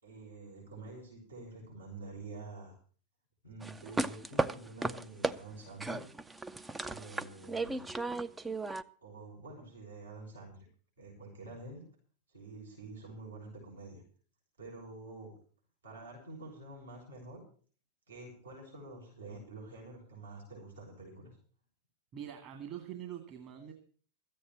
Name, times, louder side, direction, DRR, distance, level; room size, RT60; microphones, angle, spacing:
voice 1, 0.0-2.7 3.4-6.0 6.8-7.9 9.0-10.7 11.0-11.8 12.3-14.0 14.6-15.3 15.8-17.4 18.1-21.4, right 2 dB, 75° right, -3 dB, 6.5 m, -48 dB
sound 1, 3.6-5.4 5.8-8.8, right 2 dB, 10° right, 0.6 m, -35 dB
voice 2, 22.1-23.7, right 10 dB, 40° right, 4 dB, 2.1 m, -44 dB
13.5 x 8.7 x 7.4 m, 0.43 s
figure-of-eight pair, 90°, 0 cm